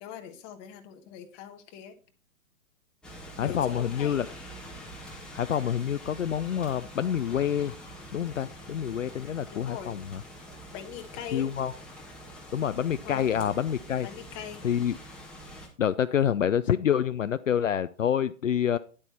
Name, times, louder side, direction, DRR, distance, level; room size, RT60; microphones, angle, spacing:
voice 1, 0.0-1.9 3.4-4.4 9.5-9.9 10.7-11.5 13.0-13.3 14.0-14.6, left 9 dB, 20° left, 7 dB, 1.2 m, -41 dB
sound 1, 3.0-15.7, equal, ahead, 1.6 m, -45 dB
voice 2, 3.4-4.3 5.3-7.7 8.1-10.2 11.3-11.7 12.5-14.1 14.6-15.0 15.8-18.8, left 9 dB, 65° left, 14 dB, 0.6 m, -27 dB
10.5 x 8.0 x 4.3 m, 0.39 s
figure-of-eight pair, 125°, 41 cm